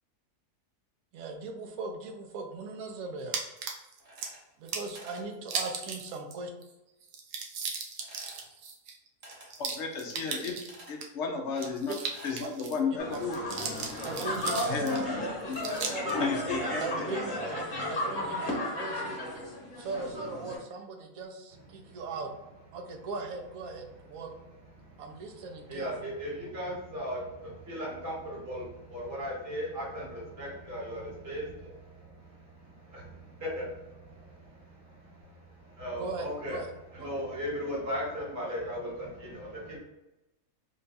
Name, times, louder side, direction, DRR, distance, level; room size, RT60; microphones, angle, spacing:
voice 1, 1.1-3.4 4.6-6.5 11.9-12.0 12.4-12.5 13.1-13.2 14.0-14.8 16.8-19.2 19.7-22.3 22.7-24.4 25.0-25.9 36.0-36.7, right 3 dB, 65° right, 3 dB, 1.0 m, -39 dB
sound 1, 3.3-4.3 4.7-5.0 5.4-6.3 6.6-6.7 7.0-11.1 11.5-12.8 13.1-15.0 15.5-16.1, right 5 dB, 85° right, 1.2 m, -37 dB
sound 2, 4.0-4.7 4.9-5.3 8.0-8.5 9.2-9.5 10.7-11.0 11.6-12.4, right 1 dB, 45° right, 1.1 m, -50 dB
voice 2, 9.6-10.6 10.9-12.0 12.2-13.4 14.7-15.1 15.5-17.1, left 5 dB, 70° left, 2 dB, 0.7 m, -33 dB
sound 3, 13.0-20.6, left 1 dB, 35° left, 1.0 m, -34 dB
voice 3, 26.2-27.2 27.7-28.1 28.5-28.6 28.9-30.0 30.4-31.0 31.3-31.4 33.5-33.6 35.8-36.6 37.0-38.9, equal, 15° right, -6 dB, 0.9 m, -35 dB
3.7 x 2.2 x 3.9 m, 0.96 s
omnidirectional pair, 1.7 m